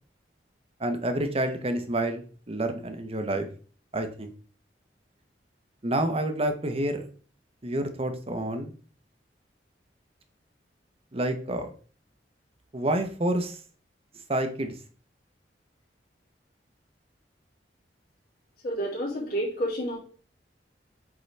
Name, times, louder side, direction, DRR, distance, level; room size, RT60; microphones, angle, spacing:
voice 1, 0.8-3.5 3.9-4.3 5.8-7.0 7.6-8.7 11.1-11.7 12.7-13.6 14.3-14.7, right 1 dB, 35° right, 7 dB, 0.9 m, -28 dB
voice 2, 18.6-20.0, equal, 55° left, -5 dB, 3.0 m, -29 dB
8.3 x 3.8 x 3.4 m, 0.40 s
head